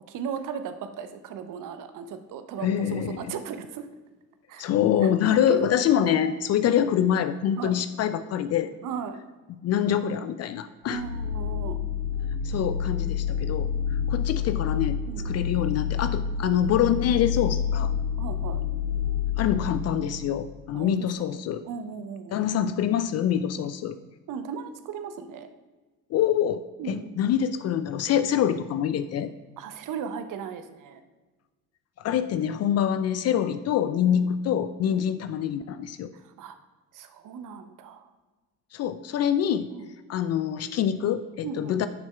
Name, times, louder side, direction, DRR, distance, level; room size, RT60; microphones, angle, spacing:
voice 1, 0.1-3.9 4.5-4.7 5.0-5.7 7.6-7.8 8.8-9.2 10.9-11.8 13.6-14.1 15.0-15.3 18.2-18.6 20.7-21.3 21.6-22.6 24.3-25.5 26.8-27.2 29.6-31.0 33.3-33.5 34.0-34.3 34.9-35.0 36.1-36.5 36.9-38.1 39.7-39.9 41.4-41.9, right 7 dB, 45° right, 9 dB, 0.8 m, -37 dB
voice 2, 2.6-3.3 4.6-8.7 9.6-11.0 12.4-13.7 14.1-17.9 19.4-21.6 22.3-24.0 26.1-26.6 26.9-29.3 32.0-36.1 38.7-39.7 40.1-41.9, left 9 dB, 40° left, 12 dB, 0.4 m, -25 dB
sound 1, 10.8-20.5, left 7 dB, 65° right, 1.4 m, -28 dB
10.5 x 7.0 x 2.3 m, 1.3 s
hypercardioid pair, 55°, 43 cm